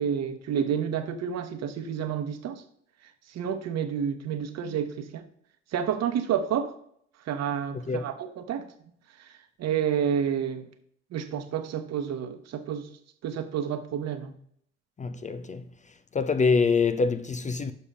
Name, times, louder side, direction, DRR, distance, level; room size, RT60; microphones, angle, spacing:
voice 1, 0.0-2.6 3.3-5.2 5.7-6.8 7.3-8.7 9.6-10.7 11.1-12.9 13.2-14.3, right 8 dB, 50° right, 1.0 m, -29 dB
voice 2, 7.7-8.1 15.0-15.6 16.1-17.7, left 4 dB, 25° left, 0.5 m, -25 dB
6.9 x 5.4 x 4.9 m
hypercardioid pair, 65°, 33 cm